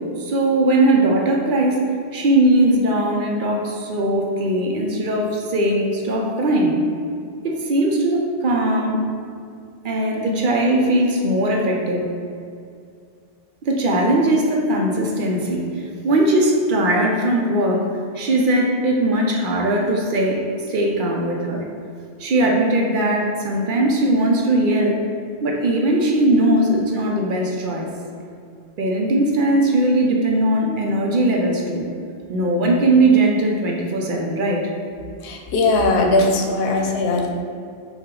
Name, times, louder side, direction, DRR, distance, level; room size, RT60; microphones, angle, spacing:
voice 1, 0.2-1.8 2.1-6.8 7.4-9.1 9.8-12.1 13.6-17.9 18.1-21.7 22.2-25.0 25.4-27.9 28.8-31.8 32.3-34.7, right 1 dB, 60° right, 0 dB, 0.7 m, -19 dB
voice 2, 35.2-37.3, left 2 dB, 80° left, 2 dB, 0.8 m, -19 dB
5.5 x 2.4 x 3.7 m, 2.3 s
omnidirectional pair, 1.0 m